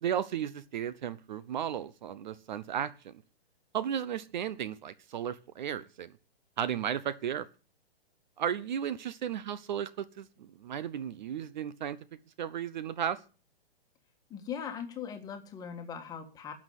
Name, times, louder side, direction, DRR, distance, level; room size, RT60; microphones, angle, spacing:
voice 1, 0.0-3.1 3.7-6.1 6.6-7.5 8.4-12.0 12.4-13.2, right 9 dB, 45° right, 17 dB, 0.8 m, -34 dB
voice 2, 14.3-16.5, left 7 dB, 10° left, 6 dB, 1.5 m, -40 dB
12.0 x 6.4 x 9.3 m, 0.37 s
hypercardioid pair, 155°, 31 cm